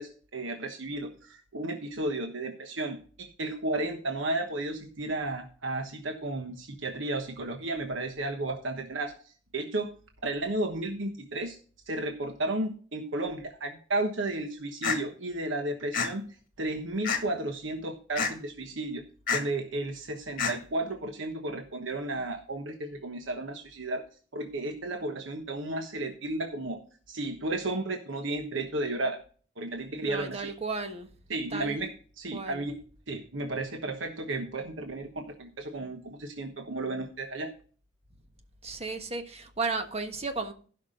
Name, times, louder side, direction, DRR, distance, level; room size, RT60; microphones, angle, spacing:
voice 1, 0.0-9.1 9.5-9.9 10.2-11.6 11.9-16.2 16.6-19.0 19.3-24.0 24.3-26.8 27.1-29.2 29.6-30.5 31.3-31.9 32.2-32.8 33.1-37.5, right 2 dB, 80° right, 1.2 m, -33 dB
sound 1, 14.8-15.0 15.9-16.1 17.0-17.4 18.2-18.3 19.3-19.4 20.4-20.5, left 5 dB, 50° left, 1.6 m, -27 dB
voice 2, 30.1-31.1 31.5-31.9 32.3-32.7 38.6-40.5, right 4 dB, 35° right, 1.3 m, -34 dB
16.0 x 5.9 x 3.8 m
head